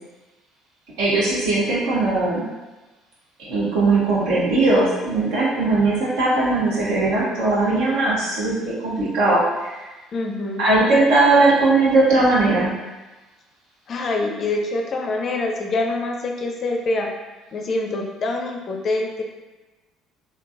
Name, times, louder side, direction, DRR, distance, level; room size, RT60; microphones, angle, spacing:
voice 1, 1.0-2.4 3.4-8.5 8.8-9.8 10.6-12.7, right 2 dB, 65° right, -7 dB, 1.0 m, -19 dB
voice 2, 10.1-10.6 13.9-17.1 17.5-19.2, left 2 dB, 45° left, 2 dB, 0.4 m, -25 dB
3.6 x 2.2 x 2.4 m, 1.1 s
figure-of-eight pair, 55°, 0 cm